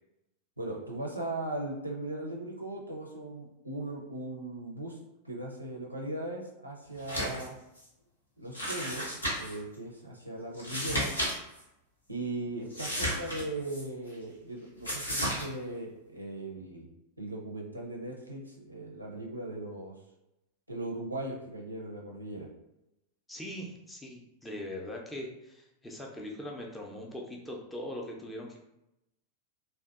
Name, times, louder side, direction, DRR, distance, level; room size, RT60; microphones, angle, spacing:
voice 1, 0.6-5.0 5.2-7.5 8.4-11.1 12.1-16.9 17.2-19.9 20.7-22.5, right 2 dB, 85° right, -1 dB, 0.4 m, -38 dB
sound 1, 7.0-7.5 7.8-7.9 8.5-9.6 10.5-11.3 11.6-11.7 12.7-13.8 14.8-15.4, equal, 80° left, 0.7 m, -33 dB
voice 2, 23.3-28.6, left 1 dB, 10° left, -1 dB, 0.4 m, -41 dB
2.6 x 2.1 x 2.3 m, 0.89 s
figure-of-eight pair, 90°, 0 cm